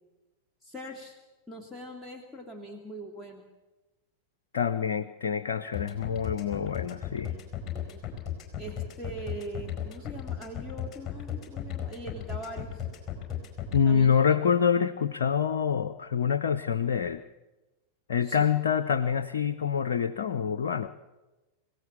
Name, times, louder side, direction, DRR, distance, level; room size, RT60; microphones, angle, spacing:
voice 1, 0.6-1.2 1.5-3.4 7.3-8.0 8.6-12.9 13.9-14.1 18.2-18.4, right 1 dB, ahead, -1 dB, 2.6 m, -42 dB
voice 2, 4.5-7.3 13.7-17.2 18.1-20.9, left 7 dB, 65° left, 10 dB, 0.8 m, -26 dB
sound 1, 5.7-13.8, left 11 dB, 25° left, 4.6 m, -35 dB
26.5 x 16.5 x 7.2 m, 1.1 s
figure-of-eight pair, 90°, 0 cm